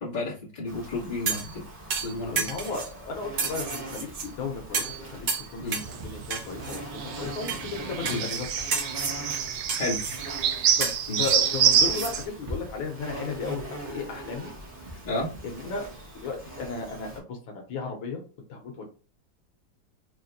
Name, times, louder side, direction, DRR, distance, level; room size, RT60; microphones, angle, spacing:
voice 1, 0.0-1.6 2.0-2.5 5.6-5.8 8.0-8.2 9.7-10.0 11.1-11.2 15.0-15.3, left 2 dB, 20° left, -7 dB, 1.7 m, -31 dB
Insect, 0.7-17.2, right 1 dB, 25° right, 0.8 m, -41 dB
sound 1, 1.3-1.6 1.9-2.9 3.4-4.3 4.7-5.0 5.3-5.9 6.3-6.8 7.5-7.6 8.1-8.4 8.7-9.2 9.7-10.2 10.8-12.1 12.5-12.6, right 5 dB, 90° right, 0.5 m, -31 dB
voice 2, 2.5-8.5 10.8-10.9 11.2-14.5 15.4-15.8 16.2-18.2 18.5-18.9, left 4 dB, 85° left, 3 dB, 1.7 m, -35 dB
sound 2, 5.7-12.2, right 8 dB, 70° right, 1.0 m, -27 dB
4.5 x 2.8 x 2.7 m, 0.36 s
omnidirectional pair, 2.1 m